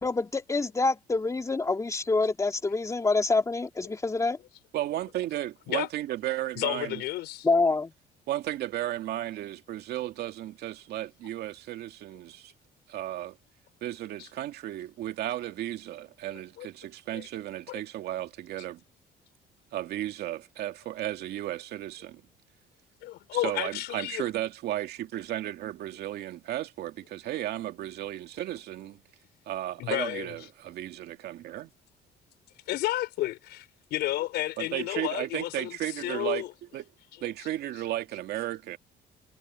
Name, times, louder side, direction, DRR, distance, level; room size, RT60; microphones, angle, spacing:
voice 1, 0.0-4.4 7.4-7.9, left 3 dB, 20° left, 2.7 m, -26 dB
voice 2, 4.7-7.0 8.3-12.5 12.9-13.3 13.8-18.8 19.7-22.2 23.3-29.0 29.5-31.7 34.6-36.4 36.7-36.8 37.2-38.8, right 13 dB, 70° right, 2.4 m, -34 dB
voice 3, 6.5-7.5 14.2-14.3 16.3-16.7 17.1-17.3 17.7-17.8 23.0-24.3 29.8-30.5 32.7-36.5 37.1-37.2, left 15 dB, 80° left, 4.3 m, -32 dB
cardioid pair, 110°, 17 cm